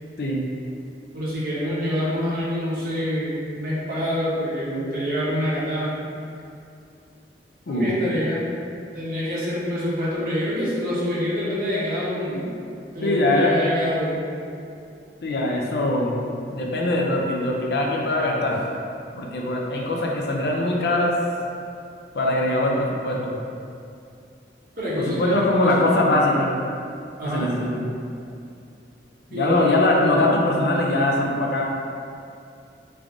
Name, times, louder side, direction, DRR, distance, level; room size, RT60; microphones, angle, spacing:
voice 1, 1.1-6.0 7.7-8.4 8.9-12.5 12.9-14.2 24.8-25.7 27.2-27.5 29.3-29.7, equal, 50° right, -8 dB, 0.9 m, -26 dB
voice 2, 13.0-13.6 15.2-18.6 19.2-21.2 22.1-23.4 25.1-26.5 27.2-27.9 29.3-31.6, left 1 dB, 65° left, -1 dB, 0.4 m, -22 dB
3.4 x 2.5 x 3.5 m, 2.5 s
head